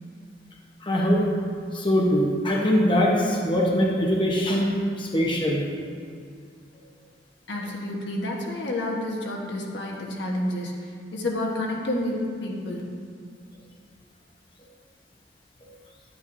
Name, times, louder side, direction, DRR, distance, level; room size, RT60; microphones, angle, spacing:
voice 1, 0.8-1.2 1.7-5.9 15.6-15.7, equal, 25° left, -3 dB, 1.1 m, -22 dB
voice 2, 7.5-10.8 11.1-12.8, left 1 dB, 70° left, -2 dB, 1.3 m, -29 dB
10.5 x 10.0 x 2.7 m, 2.2 s
head